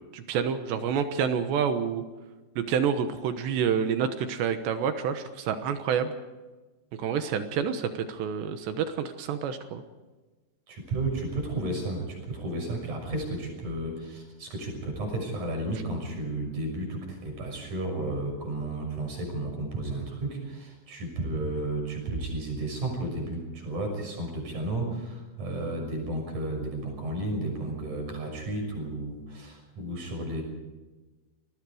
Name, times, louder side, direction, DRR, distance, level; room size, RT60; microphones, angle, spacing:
voice 1, 0.0-2.0 2.6-6.1 7.0-9.8, right 7 dB, 70° right, 8 dB, 3.1 m, -28 dB
voice 2, 10.7-30.4, right 2 dB, 40° right, 3 dB, 7.5 m, -33 dB
28.5 x 20.5 x 5.0 m, 1.2 s
omnidirectional pair, 5.6 m